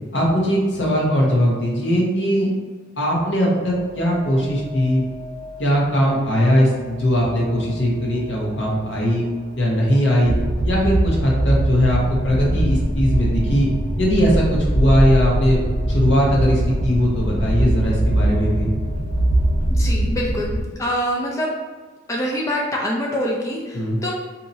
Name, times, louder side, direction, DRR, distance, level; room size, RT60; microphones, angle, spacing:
voice 1, 0.1-2.5 3.0-5.0 5.6-9.2 9.5-10.3 10.6-13.7 14.0-15.6 15.9-18.7 23.7-24.0, equal, 70° left, -3 dB, 1.0 m, -19 dB
sound 1, 3.7-19.7, equal, 50° right, 0.7 m, -41 dB
sound 2, 10.2-20.6, right 1 dB, 85° left, 1.5 m, -21 dB
voice 2, 19.7-21.5 22.1-24.1, equal, 15° left, -2 dB, 0.4 m, -25 dB
4.2 x 2.8 x 2.7 m, 1.4 s
head